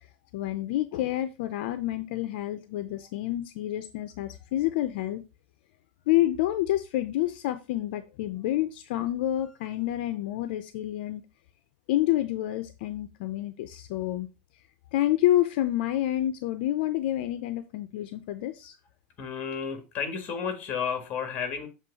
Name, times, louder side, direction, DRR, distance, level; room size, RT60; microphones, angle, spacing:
voice 1, 0.3-5.2 6.1-11.2 11.9-14.3 14.9-18.7, left 14 dB, 65° left, 0.6 m, -28 dB
voice 2, 19.2-21.7, left 6 dB, 30° left, 1.7 m, -32 dB
7.4 x 3.2 x 5.4 m
supercardioid pair, 155°, 6 cm